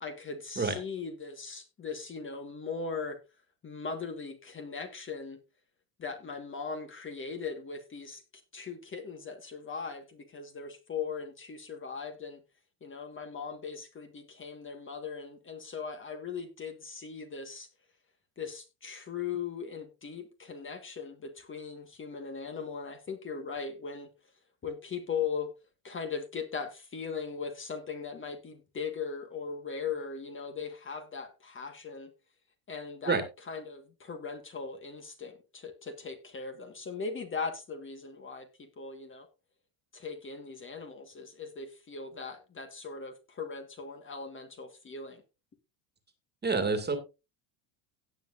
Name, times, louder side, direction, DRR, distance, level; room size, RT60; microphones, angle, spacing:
voice 1, 0.0-3.2 3.6-5.4 6.0-8.2 8.5-12.4 12.8-17.7 18.4-24.1 24.6-25.5 25.8-32.1 32.7-39.3 39.9-45.2, left 5 dB, 25° left, 1.6 m, -39 dB
voice 2, 46.4-47.0, right 4 dB, 20° right, 2.1 m, -27 dB
17.0 x 7.7 x 2.5 m
cardioid pair, 135°, 47 cm